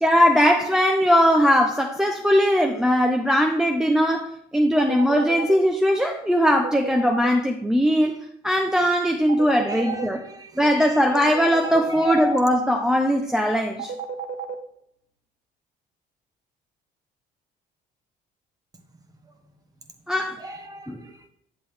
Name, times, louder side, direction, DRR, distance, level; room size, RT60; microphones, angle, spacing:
voice 1, 0.0-8.1 8.4-10.2 10.6-13.9 20.1-20.4 20.9-21.0, equal, 5° right, 3 dB, 0.6 m, -20 dB
sound 1, 4.8-5.5 6.5-7.3 9.3-10.0 11.0-11.8 13.8-14.5, right 7 dB, 60° right, 0.9 m, -31 dB
voice 2, 9.7-11.0 11.9-12.3 20.4-21.3, right 4 dB, 20° right, 6 dB, 1.2 m, -36 dB
8.9 x 7.5 x 3.3 m, 0.73 s
cardioid pair, 110°, 17 cm